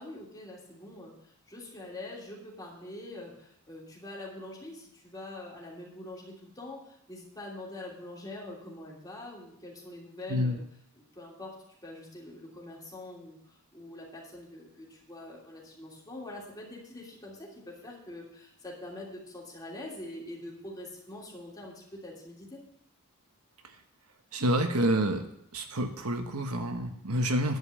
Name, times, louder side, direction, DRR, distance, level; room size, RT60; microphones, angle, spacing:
voice 1, 0.0-10.6 10.9-22.6, left 1 dB, 15° left, -4 dB, 3.0 m, -44 dB
voice 2, 24.3-25.2 25.5-27.6, equal, 80° right, 6 dB, 1.2 m, -28 dB
10.5 x 5.3 x 8.5 m, 0.73 s
head